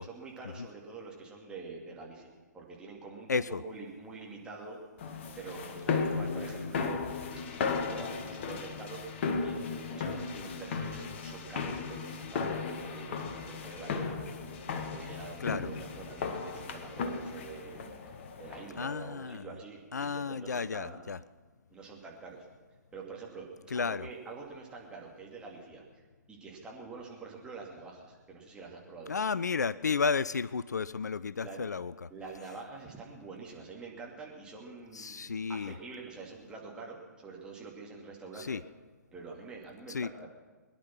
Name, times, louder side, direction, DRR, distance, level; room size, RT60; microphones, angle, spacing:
voice 1, 0.0-4.8 5.3-7.2 7.7-9.0 9.4-14.2 14.7-17.8 18.4-21.1 21.7-22.5 22.9-23.5 23.7-26.0 26.3-29.1 31.3-31.6 32.1-38.6 39.1-40.3, right 4 dB, 10° right, -3 dB, 2.8 m, -46 dB
voice 2, 3.3-3.6 5.9-6.2 15.4-15.7 18.8-19.5 19.9-21.2 23.7-24.1 29.1-32.1 34.9-35.7 38.4-38.6 39.9-40.1, left 5 dB, 70° left, 18 dB, 0.4 m, -32 dB
sound 1, 5.0-18.9, left 5 dB, 40° left, 1.3 m, -36 dB
21.5 x 10.5 x 6.1 m, 1.3 s
figure-of-eight pair, 125°, 10 cm